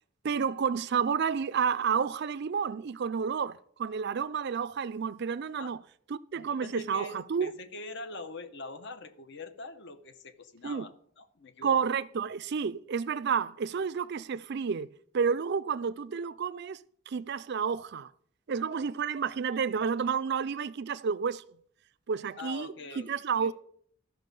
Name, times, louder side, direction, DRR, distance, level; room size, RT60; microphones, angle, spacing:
voice 1, 0.2-5.8 6.1-7.5 10.6-10.9 11.6-14.9 15.1-16.8 17.1-18.1 18.5-21.4 22.1-22.7 23.1-23.5, right 6 dB, 55° right, 0.4 m, -30 dB
voice 2, 6.3-11.9 22.4-23.5, left 3 dB, 60° left, 0.9 m, -44 dB
13.5 x 6.0 x 5.3 m
head